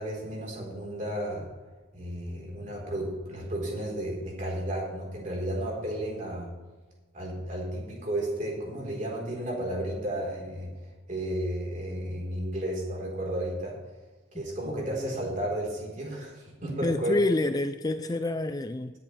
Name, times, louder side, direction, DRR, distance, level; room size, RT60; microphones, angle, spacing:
voice 1, 0.0-1.5 1.9-6.5 7.1-13.8 14.3-17.2, right 1 dB, 40° right, -2 dB, 4.0 m, -33 dB
voice 2, 16.8-18.9, left 2 dB, 20° left, 9 dB, 0.3 m, -28 dB
19.5 x 10.0 x 3.3 m, 1.3 s
head